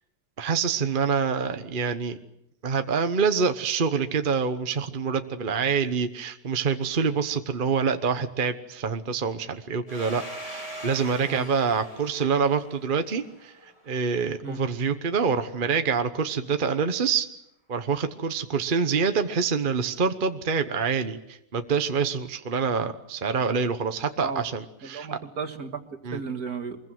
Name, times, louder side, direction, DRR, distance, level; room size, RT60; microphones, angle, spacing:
voice 1, 0.4-2.2 2.6-17.3 17.7-25.1 26.0-26.2, right 5 dB, 35° right, 8 dB, 1.0 m, -26 dB
Domestic sounds home sounds, 9.9-14.3, equal, 15° left, 6.9 m, -42 dB
voice 2, 24.8-25.8 26.1-26.8, right 5 dB, 55° right, 5 dB, 2.4 m, -34 dB
25.0 x 21.5 x 7.8 m, 0.79 s
omnidirectional pair, 1.9 m